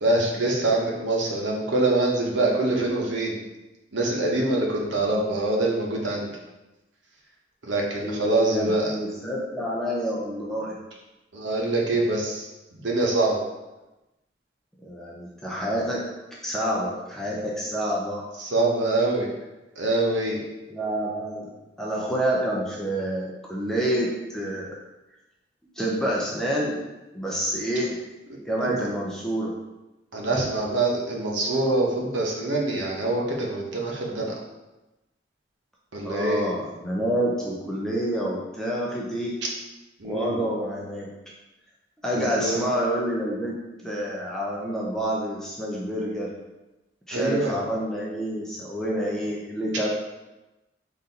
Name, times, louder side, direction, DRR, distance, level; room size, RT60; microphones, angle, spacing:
voice 1, 0.0-3.4 3.9-6.3 7.6-8.9 11.3-12.5 12.7-13.4 18.4-19.3 19.8-20.4 28.6-28.8 30.1-34.4 35.9-36.4 40.0-40.4 42.1-42.6 47.1-47.5, right 2 dB, 85° right, -2 dB, 0.9 m, -24 dB
voice 2, 7.9-10.7 14.8-18.3 20.7-21.5 21.8-24.8 25.8-26.8 27.1-28.0 28.4-29.5 36.0-39.4 40.0-41.1 42.0-43.6 43.8-46.3 47.1-49.9, right 1 dB, 5° left, -5 dB, 0.5 m, -28 dB
4.0 x 2.6 x 4.0 m, 1.0 s
head